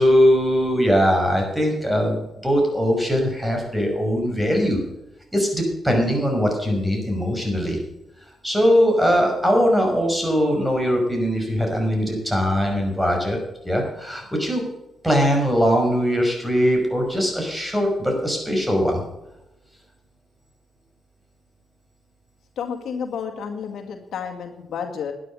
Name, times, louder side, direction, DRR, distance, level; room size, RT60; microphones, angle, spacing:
voice 1, 0.0-4.8 5.3-7.8 8.4-13.4 13.6-14.6 15.0-19.0, equal, 5° right, 1 dB, 5.7 m, -21 dB
voice 2, 22.6-25.1, left 7 dB, 75° left, 3 dB, 2.0 m, -31 dB
12.0 x 9.9 x 6.2 m, 0.94 s
cardioid pair, 70°, 0 cm